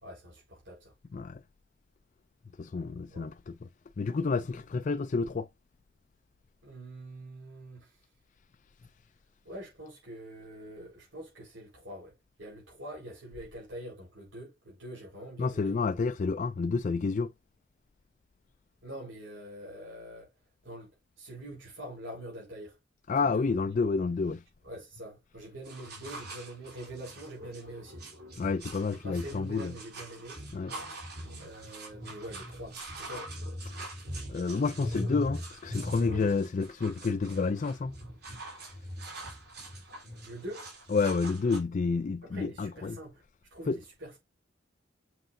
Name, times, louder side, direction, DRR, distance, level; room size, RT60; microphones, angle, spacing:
voice 1, 0.0-0.9 3.1-3.3 6.6-8.1 9.4-15.8 18.8-20.3 20.6-22.8 23.2-23.5 24.6-28.1 29.0-30.4 31.4-33.3 40.2-40.7 42.2-43.2 43.5-44.2, right 1 dB, 80° right, 4.4 m, -45 dB
voice 2, 2.6-3.3 4.0-5.5 15.4-17.3 23.1-24.4 28.4-29.7 30.5-30.7 34.3-37.9 40.9-43.0 43.7-43.8, left 4 dB, 40° left, 0.3 m, -29 dB
sound 1, 25.6-41.6, equal, 55° right, 3.8 m, -41 dB
7.7 x 5.6 x 2.6 m
head